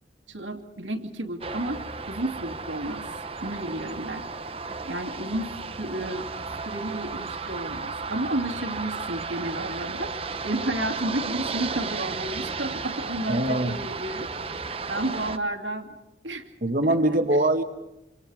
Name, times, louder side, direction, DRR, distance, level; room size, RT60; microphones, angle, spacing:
voice 1, 0.3-3.1 3.4-4.3 4.8-6.3 6.6-10.1 10.4-14.3 14.9-15.9 16.2-16.4 16.8-17.0, right 1 dB, 85° right, 5 dB, 2.6 m, -32 dB
sound 1, 1.4-15.4, right 4 dB, 30° right, 0.9 m, -34 dB
voice 2, 13.3-13.8 16.6-17.6, right 1 dB, 45° right, 6 dB, 1.8 m, -22 dB
27.5 x 27.0 x 4.9 m, 0.94 s
head